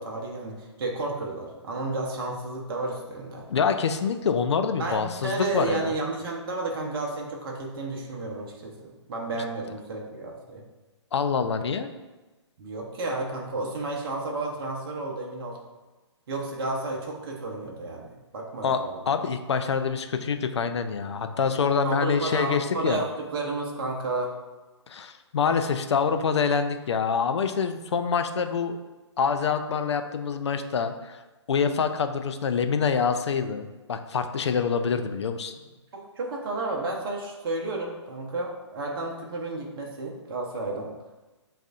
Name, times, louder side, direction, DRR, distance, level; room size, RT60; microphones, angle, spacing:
voice 1, 0.0-3.5 4.8-10.6 12.6-15.6 16.3-19.0 21.8-24.4 35.9-40.9, right 2 dB, 50° right, 0 dB, 0.8 m, -32 dB
voice 2, 3.5-5.9 11.1-11.9 18.6-18.8 19.1-23.0 24.9-28.8 29.2-31.2 31.5-35.5, left 6 dB, 65° left, 8 dB, 0.5 m, -26 dB
7.5 x 2.6 x 2.5 m, 1.2 s
figure-of-eight pair, 130°, 15 cm